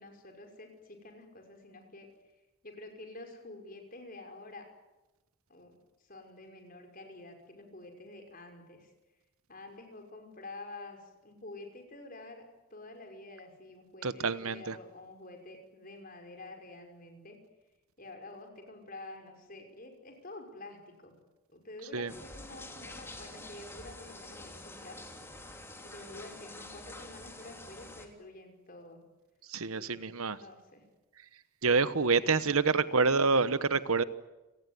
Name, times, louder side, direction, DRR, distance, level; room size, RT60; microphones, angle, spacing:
voice 1, 0.0-2.1 2.6-4.7 5.5-5.8 6.1-8.9 9.5-17.4 18.0-21.1 21.5-25.1 25.8-29.0 29.7-30.1 30.4-30.8 32.2-32.9, left 2 dB, 40° left, 5.7 m, -49 dB
voice 2, 14.0-14.7 21.9-22.1 29.5-30.4 31.6-34.0, right 4 dB, 70° right, 1.1 m, -27 dB
sound 1, 22.1-28.1, left 2 dB, 10° left, 3.0 m, -47 dB
29.5 x 19.0 x 9.8 m
head